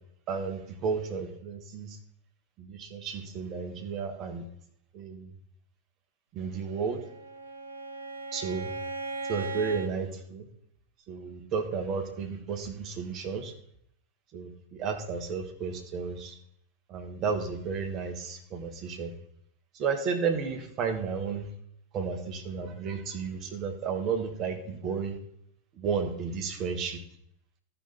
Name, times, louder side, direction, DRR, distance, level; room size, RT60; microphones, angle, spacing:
voice 1, 0.3-2.0 2.6-4.4 4.9-5.3 6.3-7.0 8.3-8.7 9.3-10.4 11.1-13.5 14.3-16.4 16.9-19.1 19.8-21.4 21.9-25.1 25.8-27.0, right 5 dB, 35° right, 5 dB, 1.4 m, -32 dB
Bowed string instrument, 6.7-9.9, right 3 dB, 75° right, 0.8 m, -37 dB
13.0 x 5.6 x 4.2 m, 0.71 s
figure-of-eight pair, 90°, 0 cm